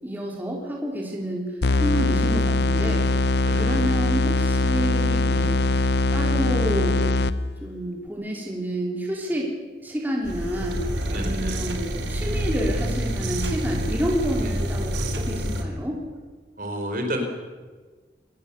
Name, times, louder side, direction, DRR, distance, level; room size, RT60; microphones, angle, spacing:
voice 1, 0.0-1.5 1.8-3.1 3.6-5.6 6.1-7.1 7.6-9.5 9.8-10.8 11.1-16.0, right 1 dB, 10° right, -2 dB, 3.9 m, -29 dB
sound 1, 1.6-7.7, left 2 dB, 70° left, 0.6 m, -22 dB
voice 2, 3.4-3.8 5.3-5.6 11.1-11.6 12.2-12.4 14.4-14.6 16.6-17.2, equal, 50° right, 4 dB, 4.0 m, -32 dB
sound 2, 10.2-15.6, equal, 85° right, 3.1 m, -27 dB
23.0 x 19.0 x 7.0 m, 1.4 s
head